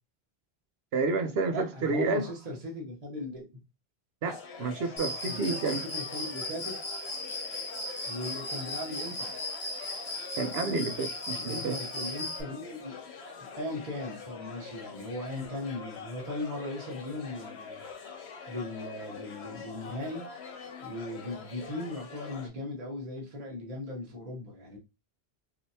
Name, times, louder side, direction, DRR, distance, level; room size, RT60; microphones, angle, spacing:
voice 1, 0.9-2.3 4.2-5.8 10.4-11.8, right 3 dB, 75° right, 0.9 m, -30 dB
voice 2, 1.5-3.6 5.3-6.8 8.1-9.3 11.3-13.0 13.5-17.8 18.5-20.3 20.8-24.8, left 1 dB, 40° right, 1.0 m, -38 dB
sound 1, 4.2-22.5, left 5 dB, 80° left, 1.0 m, -45 dB
Cricket, 5.0-12.4, left 1 dB, 30° left, 0.7 m, -37 dB
3.2 x 2.7 x 2.7 m
omnidirectional pair, 1.1 m